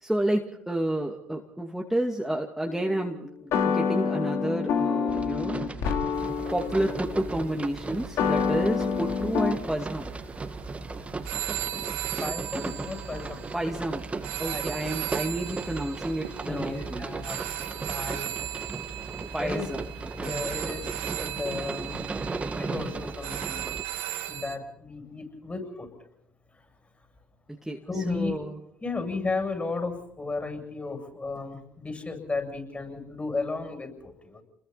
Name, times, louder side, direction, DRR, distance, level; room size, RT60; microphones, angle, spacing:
voice 1, 0.0-5.8 6.5-10.1 13.5-14.0 14.4-17.2 19.3-19.8 20.2-20.4 27.6-28.6, right 1 dB, 5° right, 0 dB, 2.5 m, -30 dB
sound 1, 2.6-9.5, left 6 dB, 65° left, 3.0 m, -28 dB
sound 2, 5.1-23.8, right 3 dB, 25° right, 2.0 m, -36 dB
sound 3, 6.1-24.6, right 12 dB, 85° right, 2.1 m, -38 dB
voice 2, 12.2-13.4 14.4-14.6 16.5-17.4 17.9-18.3 19.4-19.7 20.1-20.8 21.1-22.0 22.5-23.6 24.3-25.9 27.9-28.3 28.8-34.4, left 3 dB, 25° left, 4 dB, 7.9 m, -34 dB
30.0 x 22.0 x 4.3 m, 0.74 s
hypercardioid pair, 65°, 5 cm